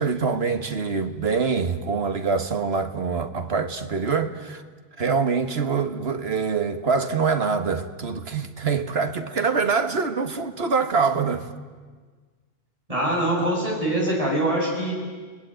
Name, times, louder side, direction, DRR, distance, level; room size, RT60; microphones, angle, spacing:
voice 1, 0.0-4.6 5.0-11.5, right 5 dB, 75° right, 1.8 m, -24 dB
voice 2, 12.9-14.9, right 1 dB, 35° right, 7.7 m, -23 dB
30.0 x 20.5 x 9.1 m
omnidirectional pair, 1.0 m